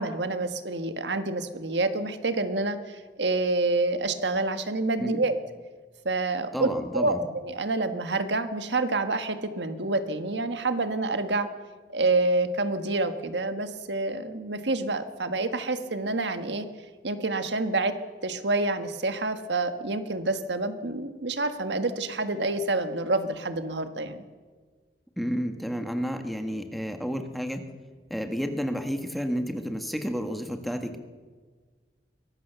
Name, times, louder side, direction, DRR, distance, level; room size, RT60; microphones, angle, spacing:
voice 1, 0.0-5.4 6.0-7.2 7.4-11.5 11.9-16.7 17.0-17.9 18.2-24.2, right 2 dB, 85° right, 9 dB, 1.6 m, -28 dB
voice 2, 6.5-7.3 25.2-27.6 28.1-31.0, equal, ahead, 6 dB, 1.6 m, -31 dB
23.0 x 18.0 x 6.9 m, 1.5 s
head